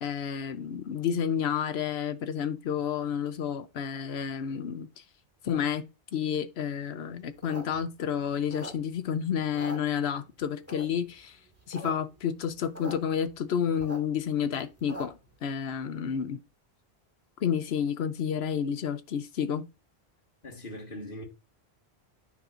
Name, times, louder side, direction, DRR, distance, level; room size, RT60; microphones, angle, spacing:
voice 1, 0.0-4.9 5.4-11.4 11.7-16.4 17.4-19.7, left 8 dB, 70° left, 1.0 m, -30 dB
sound 1, 7.3-9.1 9.4-10.3 10.7-11.1 11.5-11.9 12.2-12.3 12.4-12.9 13.3-15.3, right 1 dB, 15° right, 2.1 m, -42 dB
voice 2, 20.4-21.2, left 1 dB, 50° left, 2.0 m, -40 dB
9.5 x 6.0 x 2.6 m
omnidirectional pair, 1.1 m